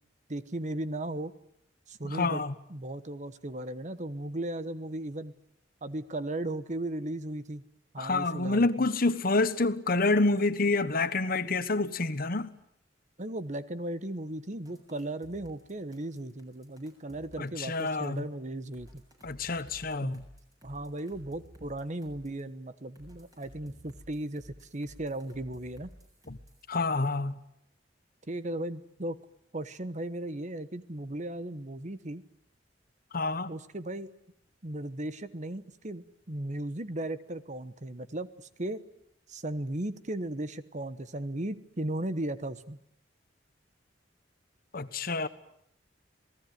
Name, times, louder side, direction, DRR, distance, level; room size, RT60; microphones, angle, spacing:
voice 1, 0.3-1.3 1.9-2.4 2.7-5.3 5.8-7.6 7.9-8.9 13.2-19.0 20.0-20.2 20.6-25.9 28.3-29.2 29.5-32.2 33.5-34.1 34.6-38.8 39.3-42.8, right 1 dB, 40° right, 1.2 m, -36 dB
voice 2, 2.1-2.5 8.0-12.5 17.4-18.2 19.2-20.2 26.3-26.4 26.7-27.4 33.1-33.5 44.7-45.3, left 3 dB, 50° left, 1.2 m, -28 dB
sound 1, 14.6-18.2 18.7-22.4 22.9-26.7, equal, 20° right, 7.5 m, -54 dB
28.0 x 19.0 x 9.3 m
head